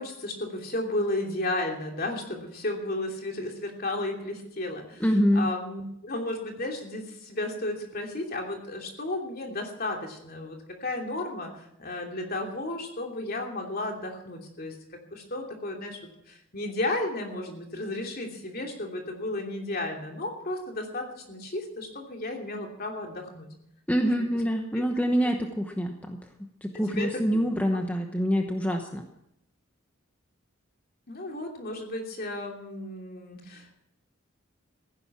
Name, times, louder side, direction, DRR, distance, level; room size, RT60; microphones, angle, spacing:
voice 1, 0.0-5.0 5.3-14.7 15.1-16.0 16.3-23.5 24.0-24.2 26.9-27.2 27.7-27.8 28.7-28.8 31.1-33.8, left 2 dB, 45° left, 2 dB, 2.9 m, -33 dB
voice 2, 5.0-5.5 23.9-26.2 26.6-29.1, equal, 10° left, 4 dB, 1.0 m, -26 dB
15.5 x 10.5 x 7.1 m, 0.78 s
head